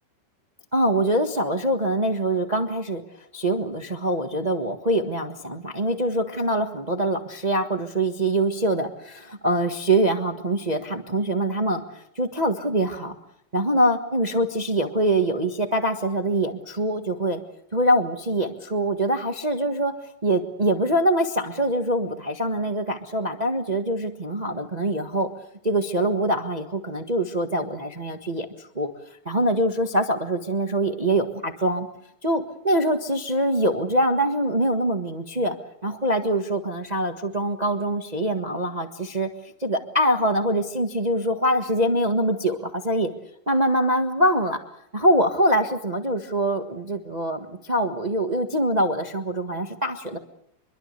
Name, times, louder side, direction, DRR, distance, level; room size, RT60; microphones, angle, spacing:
voice 1, 0.7-3.0 3.3-13.2 13.5-17.4 17.7-19.9 20.2-25.3 25.6-28.9 29.2-31.9 32.2-35.6 35.8-39.3 39.6-43.1 43.5-44.6 44.9-50.2, right 1 dB, 60° right, 5 dB, 0.4 m, -24 dB
25.5 x 22.5 x 6.8 m, 0.73 s
omnidirectional pair, 3.7 m